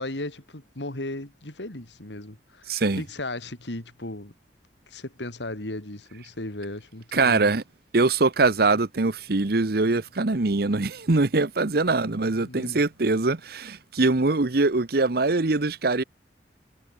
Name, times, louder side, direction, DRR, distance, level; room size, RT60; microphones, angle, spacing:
voice 1, 0.0-4.3 4.9-7.5 12.3-12.8, left 2 dB, 90° left, 3.0 m, -36 dB
voice 2, 2.7-3.0 7.1-7.6 7.9-16.0, right 3 dB, 60° right, 1.0 m, -23 dB
head